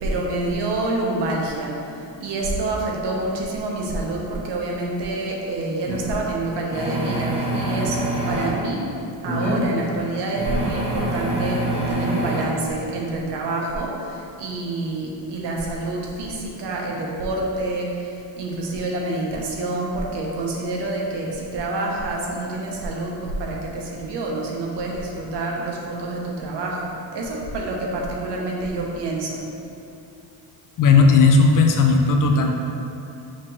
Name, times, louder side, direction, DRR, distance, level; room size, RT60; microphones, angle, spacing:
voice 1, 0.0-8.8 9.2-29.4, right 2 dB, 60° right, -2 dB, 0.9 m, -27 dB
sound 1, 5.8-6.0 6.7-8.5 9.2-9.6 10.4-12.5, right 1 dB, 15° right, 0.9 m, -25 dB
voice 2, 30.8-32.5, left 4 dB, 45° left, 3 dB, 0.4 m, -15 dB
5.8 x 3.0 x 3.0 m, 2.7 s
cardioid pair, 110°, 46 cm